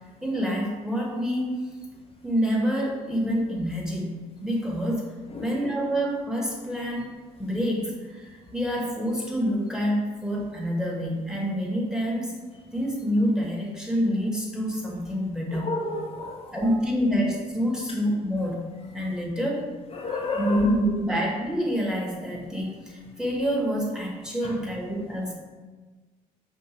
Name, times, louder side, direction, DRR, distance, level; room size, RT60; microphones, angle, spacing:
voice 1, 0.2-1.6 2.2-4.1 4.4-5.0 5.4-7.1 7.4-12.4 12.7-15.7 16.5-18.7 18.9-19.7 20.3-25.4, equal, 5° right, -2 dB, 1.2 m, -27 dB
voice 2, 15.5-16.7 19.9-20.7 24.4-24.5, left 3 dB, 30° left, -2 dB, 0.6 m, -32 dB
5.4 x 2.5 x 3.0 m, 1.3 s
supercardioid pair, 60°, 19 cm